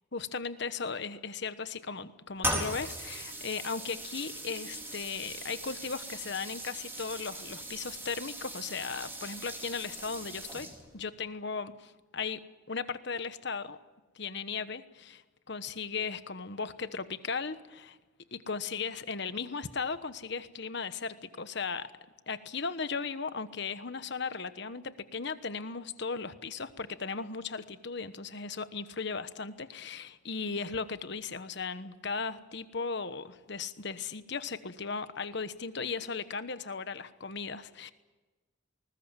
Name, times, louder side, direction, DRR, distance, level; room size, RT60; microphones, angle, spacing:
voice 1, 0.1-10.7 10.9-12.4 12.7-13.8 14.1-15.2 15.5-18.0 18.3-21.9 22.3-37.9, left 5 dB, 60° left, 12 dB, 1.2 m, -37 dB
sound 1, 2.4-11.0, right 1 dB, 10° right, 4.3 m, -39 dB
20.5 x 19.5 x 9.1 m, 1.2 s
head